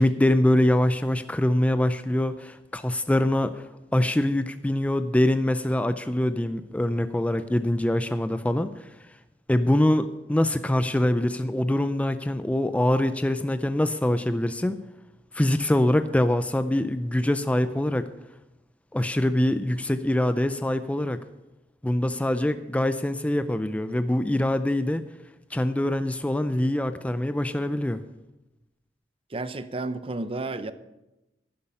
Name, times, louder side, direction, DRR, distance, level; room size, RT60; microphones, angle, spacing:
voice 1, 0.0-3.6 3.9-8.9 9.5-14.8 15.3-18.1 18.9-21.2 21.8-25.0 25.5-28.0, left 1 dB, 10° left, 11 dB, 0.4 m, -24 dB
voice 2, 29.3-30.7, right 2 dB, 30° right, 12 dB, 0.6 m, -31 dB
11.0 x 10.5 x 5.5 m, 0.97 s
head